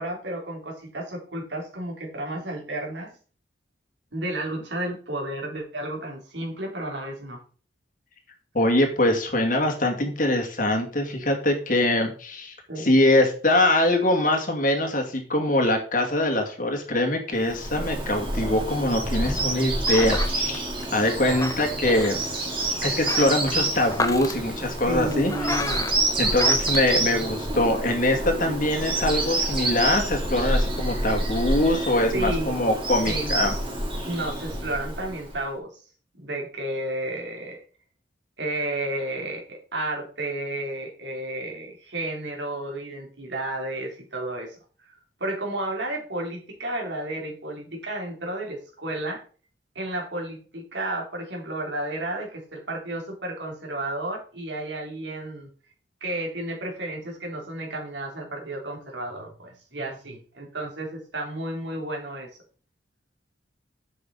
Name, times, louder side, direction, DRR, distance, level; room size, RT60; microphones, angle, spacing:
voice 1, 0.0-3.1 4.1-7.4 12.7-12.9 24.9-25.9 32.1-32.6 33.0-33.5 34.0-35.7 36.1-37.6 38.4-44.9 45.2-49.2 49.8-55.5 56.0-62.3, right 1 dB, 75° right, 0 dB, 3.6 m, -32 dB
voice 2, 8.5-20.6 20.9-22.2 22.8-25.3 26.2-33.5, left 1 dB, 45° left, 3 dB, 2.5 m, -23 dB
sound 1, 17.4-27.7, left 3 dB, 20° left, 1.0 m, -34 dB
Bird vocalization bird call bird song, 17.4-35.4, right 2 dB, 30° right, 3.3 m, -28 dB
10.5 x 7.7 x 4.1 m, 0.40 s
head